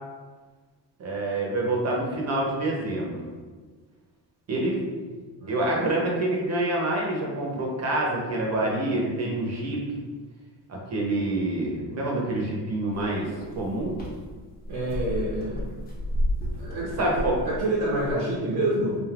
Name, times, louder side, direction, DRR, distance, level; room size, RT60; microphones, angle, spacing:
voice 1, 1.0-3.1 4.5-4.8 5.5-9.8 10.7-13.3 13.6-14.0 17.0-17.3, right 2 dB, 35° right, -2 dB, 0.8 m, -27 dB
sound 1, 12.9-18.2, equal, 20° left, 0.8 m, -32 dB
voice 2, 14.7-15.7 16.6-17.1 17.4-19.0, right 1 dB, 70° right, -5 dB, 0.8 m, -27 dB
3.4 x 2.5 x 2.4 m, 1.4 s
cardioid pair, 115°, 44 cm